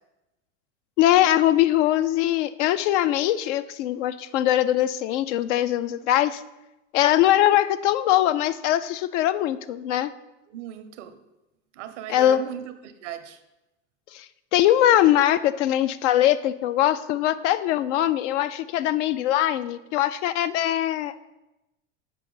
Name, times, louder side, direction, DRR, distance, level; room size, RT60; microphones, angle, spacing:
voice 1, 1.0-6.4 6.9-10.1 12.1-12.4 14.1-14.3 14.5-21.2, left 12 dB, 70° left, 13 dB, 0.5 m, -21 dB
voice 2, 10.5-11.2 11.7-13.4, right 11 dB, 70° right, 10 dB, 0.7 m, -37 dB
6.7 x 4.7 x 3.8 m, 0.97 s
hypercardioid pair, 90°, 37 cm